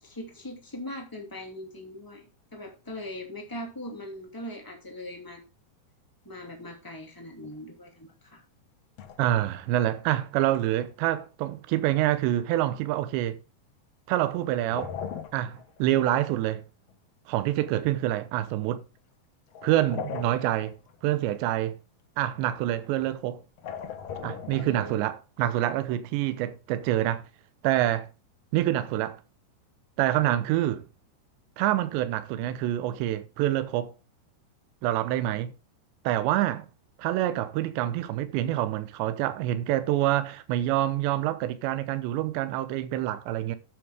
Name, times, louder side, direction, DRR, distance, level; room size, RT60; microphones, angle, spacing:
voice 1, 0.0-2.2 2.5-5.4 6.2-8.4 24.5-25.0, left 1 dB, 10° left, 1.4 m, -40 dB
sound 1, 7.4-7.6 9.0-9.7 10.4-10.6 14.3-15.9 16.3-16.4 16.9-17.0 19.5-21.0 22.6-22.9 23.6-25.1, left 7 dB, 70° left, 1.5 m, -39 dB
voice 2, 9.2-13.4 14.1-14.9 15.3-16.6 17.3-18.8 19.6-20.7 21.0-21.8 22.2-23.4 24.2-27.2 27.6-28.1 28.5-29.2 30.0-30.9 31.6-33.9 34.8-35.5 36.0-36.7 37.0-43.6, right 13 dB, 85° right, 3.1 m, -26 dB
11.0 x 8.1 x 3.5 m
omnidirectional pair, 5.0 m